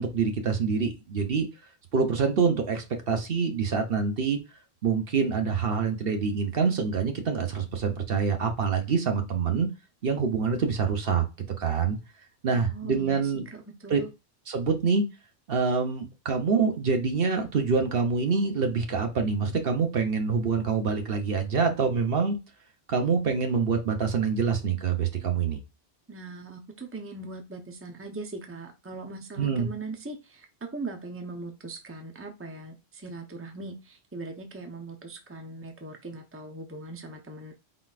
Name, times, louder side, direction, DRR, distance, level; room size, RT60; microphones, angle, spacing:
voice 1, 0.0-1.5 1.9-4.4 4.8-9.7 10.0-11.2 11.6-12.0 12.4-13.4 13.9-14.0 14.5-15.0 15.5-22.4 22.9-25.6 29.4-29.7, right 5 dB, 65° right, 4 dB, 1.1 m, -26 dB
voice 2, 12.5-13.2 13.8-14.1 26.1-30.5 30.7-37.5, right 2 dB, 15° right, 4 dB, 0.8 m, -40 dB
4.4 x 4.1 x 2.4 m, 0.26 s
omnidirectional pair, 1.1 m